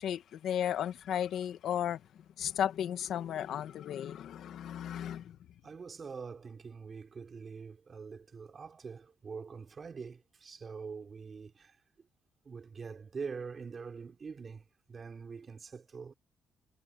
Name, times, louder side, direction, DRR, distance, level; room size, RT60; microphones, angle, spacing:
voice 1, 0.0-2.0 2.4-5.4, left 10 dB, 75° left, 1.4 m, -34 dB
voice 2, 5.6-11.8 12.4-16.1, right 5 dB, 40° right, 3.1 m, -44 dB
cardioid pair, 90°, 0 cm